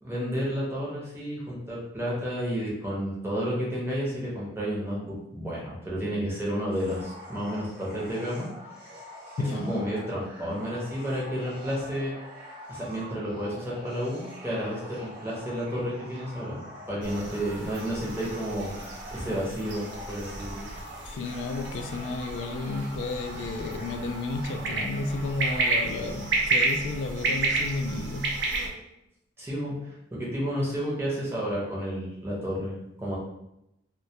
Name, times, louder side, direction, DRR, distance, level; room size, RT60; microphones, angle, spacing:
voice 1, 0.0-8.5 9.5-12.1 12.7-18.7 19.1-20.6 29.4-33.2, equal, 15° right, -6 dB, 0.6 m, -31 dB
sound 1, 6.7-25.8, equal, 50° right, 0.9 m, -45 dB
voice 2, 9.4-10.0 21.1-28.4, left 3 dB, 70° left, 4 dB, 0.3 m, -32 dB
sound 2, 17.0-28.7, right 3 dB, 70° right, 0.5 m, -31 dB
2.1 x 2.1 x 2.7 m, 0.84 s
head